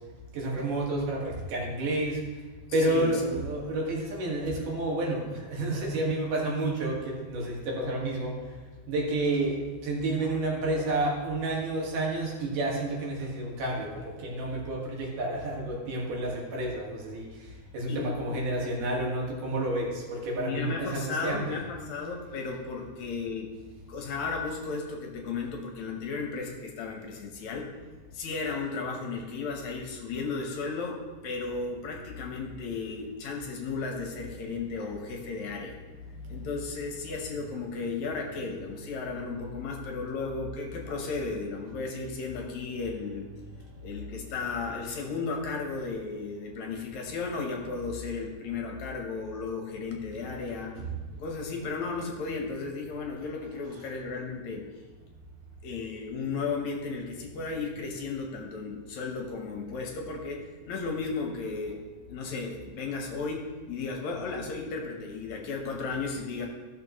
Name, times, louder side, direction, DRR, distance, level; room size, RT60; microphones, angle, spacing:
voice 1, 0.3-2.2 2.7-8.3 8.9-9.6 9.8-17.3 17.7-21.6 50.7-50.8, right 2 dB, 80° right, -3 dB, 3.3 m, -30 dB
voice 2, 2.8-3.4 10.2-10.4 17.9-18.4 20.4-23.5 23.9-27.7 28.1-35.8 36.3-43.3 43.8-50.8 51.1-54.6 55.6-61.8 62.1-66.5, left 4 dB, 70° left, 1 dB, 2.2 m, -34 dB
14.5 x 6.4 x 3.0 m, 1.3 s
omnidirectional pair, 3.6 m